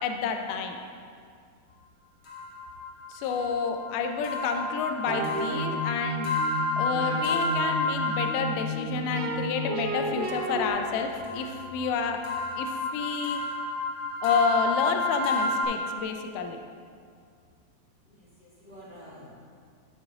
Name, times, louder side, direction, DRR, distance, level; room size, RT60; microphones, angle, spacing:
voice 1, 0.0-0.8 3.1-6.3 6.8-12.2 12.6-13.4 14.2-16.6, left 5 dB, 80° left, 5 dB, 1.9 m, -29 dB
sound 1, 2.2-8.7 10.2-15.6, left 2 dB, 45° left, 1.8 m, -31 dB
sound 2, 5.1-10.7, right 1 dB, 80° right, 3.0 m, -32 dB
voice 2, 18.1-19.3, equal, 20° right, -9 dB, 1.9 m, -49 dB
13.0 x 5.3 x 3.6 m, 2.2 s
omnidirectional pair, 4.2 m